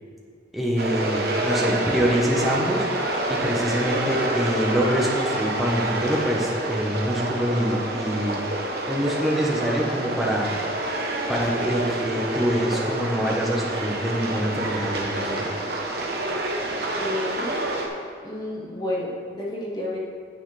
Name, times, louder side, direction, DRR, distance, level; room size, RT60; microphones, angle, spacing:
voice 1, 0.5-2.8 3.3-8.4 8.9-10.5 11.3-15.5, equal, ahead, -4 dB, 1.3 m, -25 dB
sound 1, 0.8-17.9, right 1 dB, 55° right, 1.1 m, -28 dB
voice 2, 16.7-17.6 18.2-20.0, left 1 dB, 20° left, -4 dB, 1.4 m, -31 dB
9.7 x 8.4 x 3.4 m, 2.2 s
head